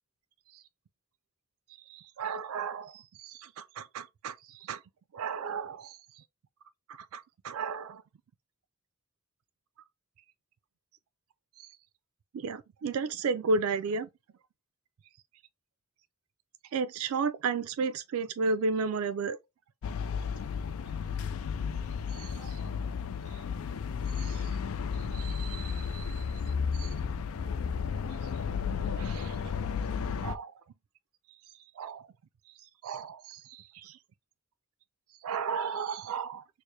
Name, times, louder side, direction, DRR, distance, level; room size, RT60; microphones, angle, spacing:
voice 1, 1.9-4.8 5.1-6.2 6.9-8.0 11.6-11.7 12.3-14.1 16.7-19.4 22.1-22.6 23.3-23.4 24.2-24.6 25.1-26.2 26.7-26.9 28.2-28.3 29.0-29.4 30.2-30.5 31.8-32.0 32.8-34.0 35.2-36.4, right 4 dB, 80° right, 0.4 m, -34 dB
sound 1, 19.8-30.4, left 6 dB, 80° left, 0.4 m, -33 dB
4.5 x 2.0 x 3.2 m
head